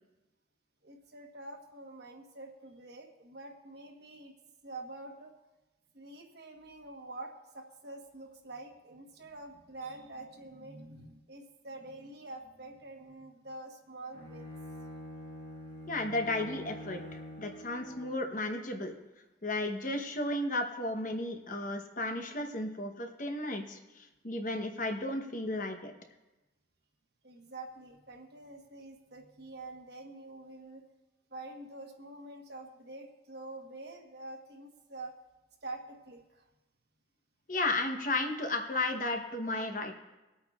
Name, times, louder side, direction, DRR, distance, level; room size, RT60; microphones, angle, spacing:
voice 1, 0.8-4.3 4.6-5.3 5.9-14.5 27.2-30.8 31.3-35.1 35.6-36.4, right 2 dB, 55° right, 2 dB, 1.2 m, -46 dB
Bowed string instrument, 14.1-18.3, equal, 65° left, 1.4 m, -46 dB
voice 2, 15.9-18.9 19.4-25.9 37.5-40.0, left 2 dB, 40° left, 4 dB, 0.9 m, -34 dB
24.5 x 8.6 x 2.4 m, 1.1 s
head